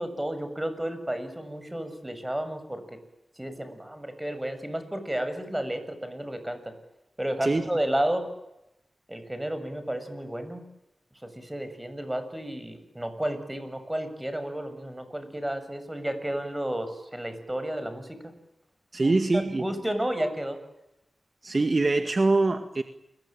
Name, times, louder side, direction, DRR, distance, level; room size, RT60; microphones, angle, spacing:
voice 1, 0.0-3.0 3.4-6.7 7.2-8.3 9.1-10.6 11.2-18.2 19.0-20.6, right 1 dB, 15° right, 10 dB, 7.4 m, -32 dB
voice 2, 18.9-19.6 21.4-22.8, right 3 dB, 45° right, 7 dB, 2.1 m, -23 dB
29.0 x 22.5 x 9.1 m, 0.87 s
cardioid pair, 45°, 0 cm